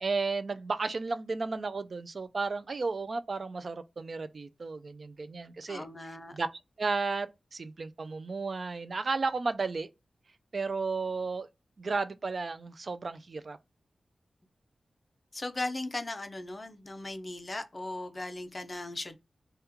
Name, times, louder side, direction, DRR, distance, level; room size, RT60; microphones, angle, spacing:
voice 1, 0.0-5.9 6.3-6.5 6.8-9.9 10.5-11.5 11.8-13.6, right 4 dB, 45° right, 0.3 m, -33 dB
voice 2, 5.7-6.4 15.3-19.2, left 2 dB, 30° left, 0.5 m, -37 dB
2.9 x 2.2 x 3.5 m
wide cardioid pair, 135°, 0 cm